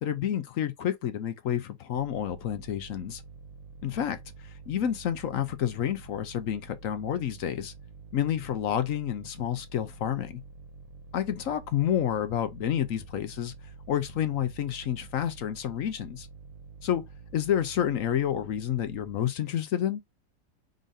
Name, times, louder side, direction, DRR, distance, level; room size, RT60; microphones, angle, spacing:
voice 1, 0.0-3.2 3.8-7.7 8.1-10.4 11.1-13.5 13.9-16.3 16.8-17.0 17.3-20.0, left 10 dB, 60° left, 0.9 m, -29 dB
sound 1, 1.9-19.2, right 4 dB, 50° right, 1.3 m, -48 dB
5.0 x 3.9 x 2.6 m
omnidirectional pair, 1.9 m